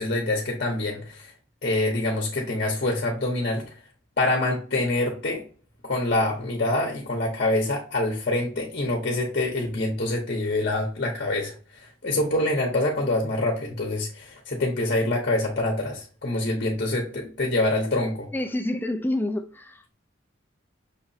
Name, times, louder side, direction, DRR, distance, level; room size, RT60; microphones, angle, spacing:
voice 1, 0.0-1.3 1.6-3.6 4.2-5.4 5.8-18.3, left 2 dB, 50° left, 0.9 m, -26 dB
voice 2, 18.3-19.9, left 1 dB, 10° left, 0.3 m, -28 dB
5.9 x 3.0 x 2.7 m
head